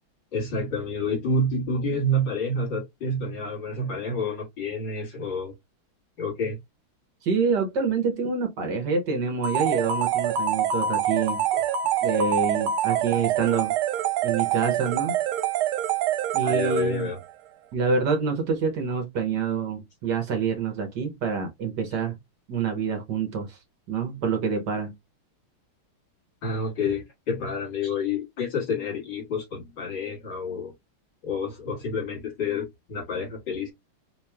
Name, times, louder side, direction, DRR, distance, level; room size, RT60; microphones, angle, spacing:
voice 1, 0.3-5.5 6.2-6.6 11.5-11.6 16.4-17.2 26.4-30.7 31.2-33.7, left 2 dB, 60° left, 2.5 m, -29 dB
voice 2, 7.2-11.4 12.0-13.7 14.2-15.2 16.3-17.1 17.7-22.2 22.5-23.6 23.9-24.9, right 5 dB, 60° right, 1.3 m, -26 dB
sound 1, 9.4-17.2, right 9 dB, 85° right, 1.5 m, -25 dB
4.7 x 3.0 x 2.2 m
omnidirectional pair, 2.3 m